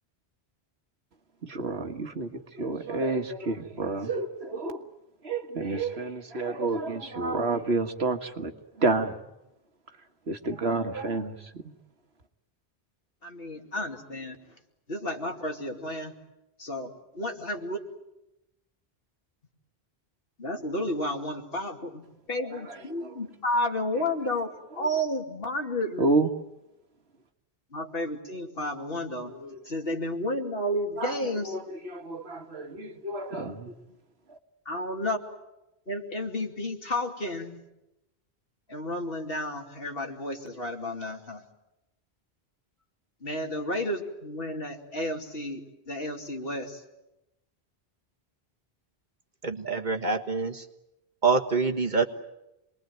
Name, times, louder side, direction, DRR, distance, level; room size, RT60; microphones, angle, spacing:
voice 1, 1.4-4.9 5.2-8.5 8.8-9.3 10.3-11.7 22.5-23.2 24.0-24.1 24.8-24.9 26.0-26.3 29.2-29.6 31.0-33.7, right 3 dB, 75° right, 1.9 m, -30 dB
voice 2, 13.2-14.4 14.9-16.1 16.6-17.8 20.4-26.1 27.7-29.3 29.7-31.5 34.7-35.2 35.9-37.6 38.7-41.4 43.2-46.8, left 1 dB, 60° left, 2.8 m, -32 dB
voice 3, 49.4-50.7 51.2-52.0, right 4 dB, 45° right, 1.7 m, -25 dB
27.5 x 21.5 x 9.3 m
omnidirectional pair, 1.1 m